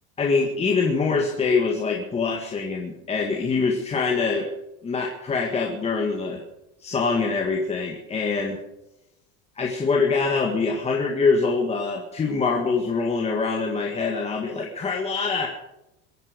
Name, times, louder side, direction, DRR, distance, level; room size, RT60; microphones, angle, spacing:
voice 1, 0.2-4.5 4.8-6.4 6.8-8.6 9.6-15.5, left 4 dB, 20° left, 0 dB, 1.8 m, -24 dB
23.0 x 9.1 x 6.4 m, 0.92 s
cardioid pair, 140°, 31 cm